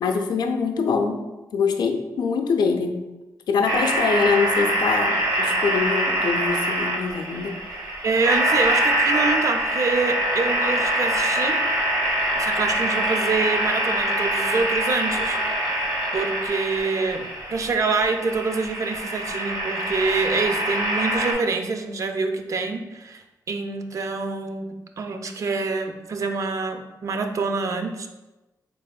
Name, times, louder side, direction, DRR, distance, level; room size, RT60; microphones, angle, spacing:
voice 1, 0.0-3.1 3.5-7.5, left 5 dB, 75° left, 5 dB, 0.4 m, -24 dB
sound 1, 3.6-21.3, right 1 dB, 65° right, 1.0 m, -24 dB
voice 2, 8.0-11.6 12.3-15.8 16.1-28.1, right 4 dB, 50° right, 6 dB, 0.4 m, -26 dB
4.2 x 3.3 x 2.2 m, 1.1 s
cardioid pair, 110°, 7 cm